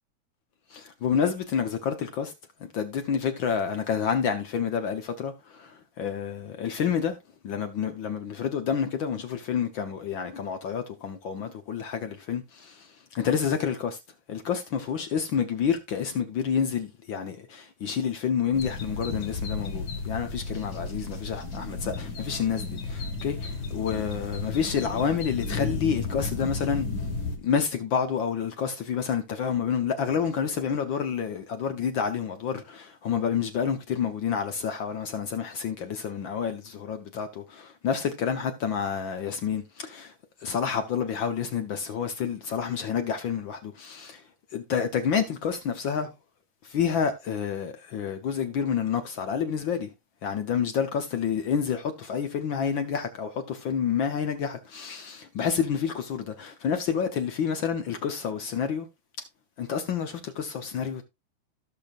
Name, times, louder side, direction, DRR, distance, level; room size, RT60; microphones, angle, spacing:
voice 1, 0.7-2.3 2.6-7.2 7.4-12.9 13.1-14.0 14.3-26.9 27.4-40.1 40.4-44.2 44.5-46.1 46.6-49.9 50.2-58.9 59.6-61.0, left 7 dB, 75° left, 1.1 m, -29 dB
sound 1, 18.5-27.4, left 4 dB, 40° left, 1.9 m, -33 dB
17.0 x 6.0 x 2.5 m
omnidirectional pair, 3.4 m